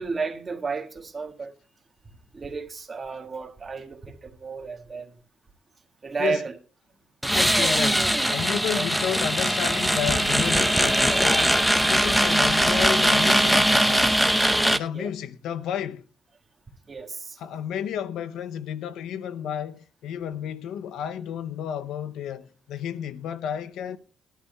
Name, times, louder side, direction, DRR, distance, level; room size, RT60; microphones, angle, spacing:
voice 1, 0.0-1.5 2.3-5.1 6.0-6.6 8.7-8.8 9.1-9.2 14.9-15.1 16.9-17.4, right 4 dB, 30° right, 1.7 m, -32 dB
sound 1, 7.2-14.8, equal, ahead, 0.7 m, -21 dB
voice 2, 7.3-14.2 14.7-16.0 17.4-24.0, left 9 dB, 85° left, 0.6 m, -31 dB
sound 2, 10.0-12.7 13.1-13.3, equal, 15° left, 1.7 m, -37 dB
19.5 x 11.5 x 2.3 m
cardioid pair, 90°, 0 cm